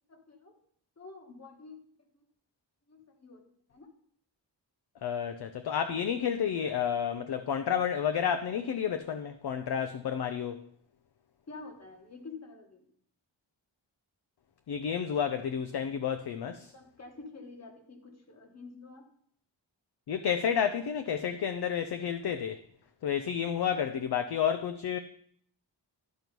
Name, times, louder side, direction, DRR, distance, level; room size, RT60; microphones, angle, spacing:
voice 1, 0.1-0.5 1.0-1.8 2.1-2.2 2.9-3.4 3.7-3.9 11.5-12.9 16.4-19.1 23.6-23.8, left 3 dB, 35° left, 1.4 m, -48 dB
voice 2, 5.0-10.6 14.7-16.7 20.1-22.6 23.0-25.0, left 8 dB, 60° left, 0.5 m, -30 dB
12.5 x 4.6 x 5.2 m
wide cardioid pair, 180°, 45 cm